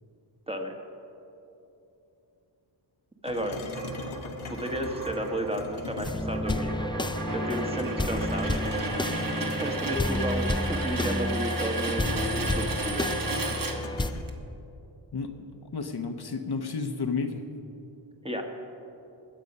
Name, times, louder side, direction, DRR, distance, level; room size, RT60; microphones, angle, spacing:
sound 1, 3.2-6.9 7.6-14.2, left 3 dB, 90° left, 1.3 m, -42 dB
voice 1, 3.2-3.6 4.5-6.8 7.3-8.6 9.4-13.1 18.2-18.5, equal, 10° right, 3 dB, 1.3 m, -32 dB
sound 2, 3.7-14.3, right 3 dB, 45° right, 1.3 m, -34 dB
sound 3, 6.0-14.1, left 2 dB, 10° left, 0.4 m, -30 dB
voice 2, 15.1-15.5 15.7-17.4, left 4 dB, 55° left, 6 dB, 0.9 m, -31 dB
20.5 x 8.2 x 5.4 m, 2.9 s
wide cardioid pair, 110°, 47 cm